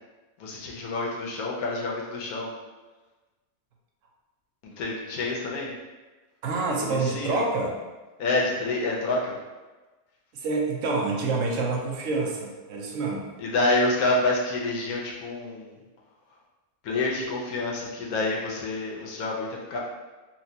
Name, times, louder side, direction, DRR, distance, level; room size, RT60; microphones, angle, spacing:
voice 1, 0.4-2.5 4.6-5.7 6.8-7.4 8.2-9.4 13.4-15.8 16.8-19.8, left 2 dB, 85° left, -2 dB, 1.2 m, -28 dB
voice 2, 6.4-7.8 10.3-13.3, right 3 dB, 70° right, -1 dB, 0.9 m, -27 dB
4.2 x 2.1 x 2.7 m, 1.2 s
omnidirectional pair, 1.5 m